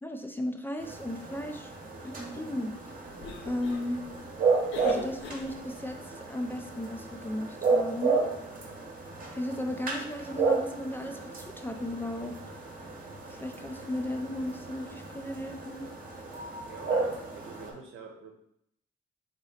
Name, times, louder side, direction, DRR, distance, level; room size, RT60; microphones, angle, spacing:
voice 1, 0.0-1.7 2.0-2.7 3.4-4.0 4.8-8.2 9.3-12.4 13.3-15.9, left 1 dB, 10° left, 4 dB, 0.4 m, -35 dB
sound 1, 0.8-17.7, right 4 dB, 45° right, 0.9 m, -33 dB
Cough, 3.0-5.9, left 5 dB, 80° left, 0.5 m, -45 dB
voice 2, 16.7-18.3, right 4 dB, 80° right, 2 dB, 0.8 m, -47 dB
2.9 x 2.9 x 4.0 m, 0.75 s
cardioid pair, 90°, 20 cm